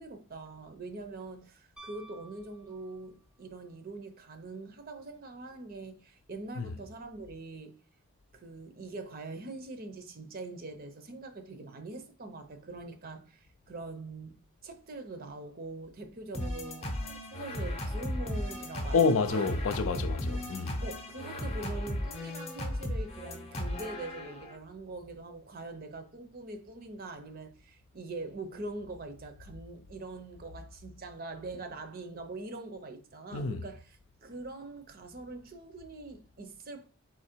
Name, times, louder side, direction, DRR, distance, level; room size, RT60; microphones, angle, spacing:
voice 1, 0.0-7.8 8.3-14.4 14.6-19.5 20.8-36.8, right 2 dB, 45° right, 0.6 m, -43 dB
Piano, 1.8-3.3 5.7-5.8, right 2 dB, 5° right, 0.4 m, -53 dB
sound 1, 16.3-24.6, left 1 dB, 30° left, 0.7 m, -36 dB
voice 2, 18.9-20.8 33.3-33.6, left 4 dB, 65° left, 0.5 m, -28 dB
3.7 x 2.8 x 4.4 m
head